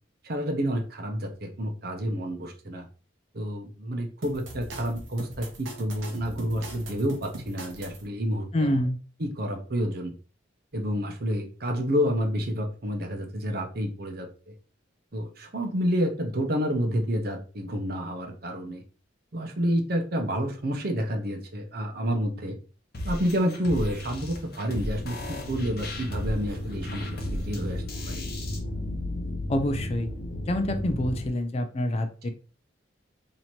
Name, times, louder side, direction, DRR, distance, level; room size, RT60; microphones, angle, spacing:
voice 1, 0.2-2.9 3.3-8.8 9.2-10.1 10.7-14.3 15.1-18.8 19.3-22.6 23.0-28.3, equal, 50° right, 4 dB, 0.7 m, -29 dB
sound 1, 4.2-8.0, right 1 dB, 80° right, 0.9 m, -41 dB
voice 2, 8.5-9.0 29.5-30.1 30.4-32.3, left 1 dB, 30° left, 7 dB, 0.4 m, -26 dB
sound 2, 22.9-28.6, left 1 dB, 55° left, 0.9 m, -36 dB
sound 3, 24.9-31.3, left 1 dB, 75° left, 1.2 m, -34 dB
3.0 x 2.8 x 4.2 m, 0.38 s
head